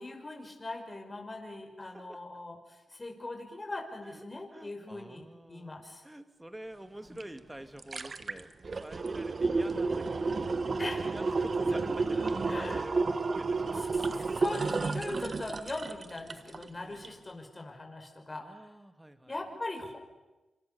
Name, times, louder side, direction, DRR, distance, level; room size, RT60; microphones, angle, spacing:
voice 1, 0.0-6.0 7.0-7.2 10.8-11.1 12.4-12.9 13.9-18.7 19.3-20.0, left 2 dB, 25° left, 2 dB, 5.9 m, -40 dB
voice 2, 1.8-2.2 4.0-4.2 4.5-5.8 6.0-8.5 8.8-10.5 11.0-12.5 12.7-13.9 16.8-17.2 18.4-19.4, right 1 dB, 10° right, 9 dB, 2.3 m, -47 dB
sound 1, 7.2-7.3 7.6-16.7 17.0-17.1, right 3 dB, 45° right, 1.4 m, -31 dB
27.5 x 26.5 x 7.0 m, 1.1 s
cardioid pair, 75°, 0 cm